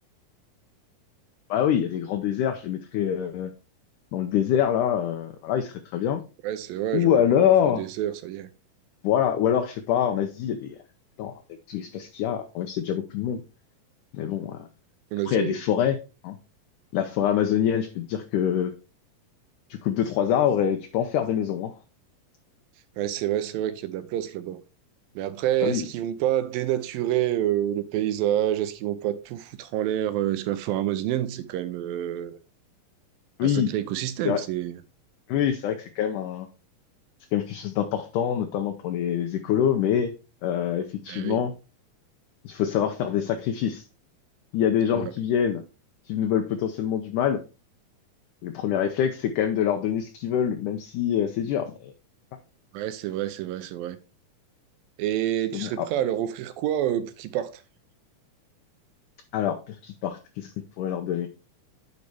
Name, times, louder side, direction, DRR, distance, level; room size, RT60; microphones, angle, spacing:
voice 1, 1.5-3.5 4.1-6.2 6.9-7.9 9.0-10.8 11.2-11.3 11.7-13.4 14.1-14.7 15.3-16.0 16.2-16.4 16.9-18.7 19.7-21.8 25.6-25.9 33.4-33.7 34.3-34.4 35.3-36.5 37.3-40.1 40.4-41.5 42.5-43.8 44.5-45.6 46.1-47.4 48.4-51.9 55.5-55.9 59.3-60.5 60.8-61.3, left 9 dB, 75° left, 2.0 m, -25 dB
voice 2, 6.4-8.5 15.1-15.8 23.0-24.6 25.2-32.4 33.4-34.8 41.1-41.4 44.9-45.1 52.7-54.0 55.0-57.6, right 12 dB, 85° right, 2.4 m, -28 dB
9.5 x 5.2 x 3.4 m
omnidirectional pair, 4.1 m